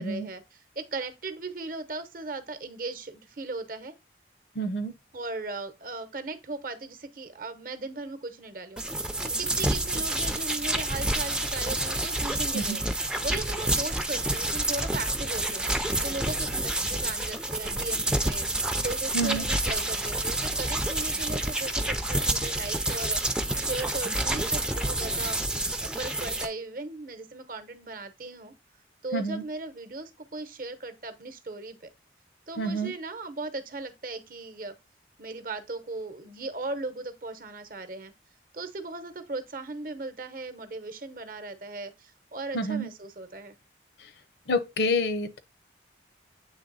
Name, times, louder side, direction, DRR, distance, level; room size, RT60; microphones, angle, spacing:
voice 1, 0.0-3.9 5.1-8.8 9.2-12.9 13.2-15.7 16.0-18.5 18.8-25.4 25.8-28.5 29.0-31.9 32.5-34.7 35.2-38.1 38.5-43.5, right 3 dB, 50° right, 0.8 m, -37 dB
voice 2, 4.6-4.9 12.5-12.8 19.1-19.5 29.1-29.4 32.6-32.9 42.5-42.9 44.5-45.4, equal, 70° left, 0.7 m, -28 dB
sound 1, 8.8-26.5, right 1 dB, 5° right, 0.4 m, -28 dB
8.1 x 3.4 x 3.9 m
head